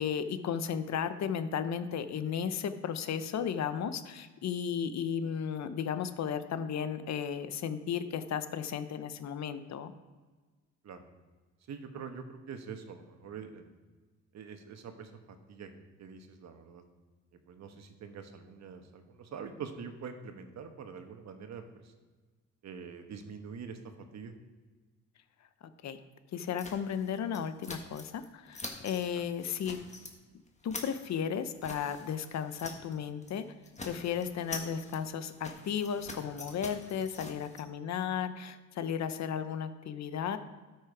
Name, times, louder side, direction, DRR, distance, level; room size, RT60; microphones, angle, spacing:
voice 1, 0.0-9.9 25.8-26.0 26.3-29.8 30.6-33.5 33.8-40.4, left 8 dB, 65° left, 11 dB, 0.9 m, -34 dB
voice 2, 11.7-13.8 14.3-16.8 17.5-21.8 22.6-24.3 29.1-29.2, right 6 dB, 60° right, 6 dB, 1.3 m, -45 dB
sound 1, 26.6-28.3 28.5-29.1 29.4-30.1 30.5-33.0 33.2-33.4 33.6-37.6, left 3 dB, 25° left, 1.6 m, -45 dB
12.5 x 6.3 x 4.8 m, 1.3 s
cardioid pair, 90°, 30 cm